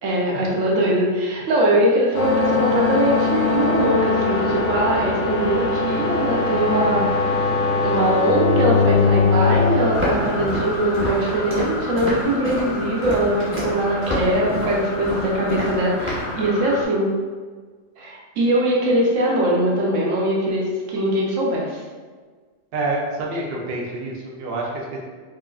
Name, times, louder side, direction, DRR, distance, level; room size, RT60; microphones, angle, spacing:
voice 1, 0.0-7.3 7.8-17.1 18.0-21.8, right 1 dB, 75° right, -3 dB, 1.1 m, -21 dB
sound 1, 2.1-16.8, left 4 dB, 60° left, 0.4 m, -23 dB
Walk footsteps, 9.9-16.3, equal, 10° right, 0.9 m, -28 dB
voice 2, 22.7-25.0, right 2 dB, 60° right, -2 dB, 0.7 m, -27 dB
4.6 x 2.5 x 2.4 m, 1.5 s
omnidirectional pair, 1.3 m